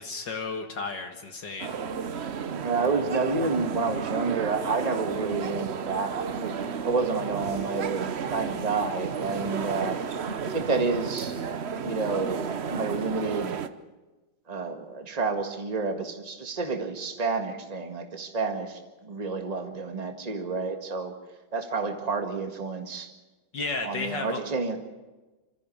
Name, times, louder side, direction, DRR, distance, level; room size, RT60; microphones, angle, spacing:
voice 1, 0.0-1.7 23.5-24.4, left 3 dB, 60° left, 5 dB, 2.2 m, -33 dB
sound 1, 1.6-13.7, right 6 dB, 55° right, 0.7 m, -33 dB
voice 2, 2.5-10.0 10.4-11.3 11.8-13.6 14.5-21.1 21.5-23.1 23.8-24.8, right 4 dB, 20° right, 5 dB, 1.8 m, -29 dB
27.0 x 14.0 x 8.6 m, 1.2 s
omnidirectional pair, 2.2 m